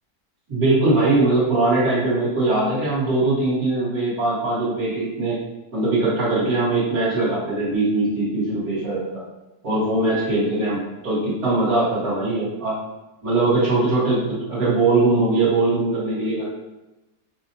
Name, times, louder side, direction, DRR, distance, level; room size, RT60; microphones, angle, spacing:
voice 1, 0.5-5.4 5.7-9.2 9.6-12.8 13.2-14.2 14.5-16.5, right 2 dB, 60° right, -9 dB, 2.0 m, -21 dB
5.0 x 2.1 x 2.7 m, 0.99 s
omnidirectional pair, 1.8 m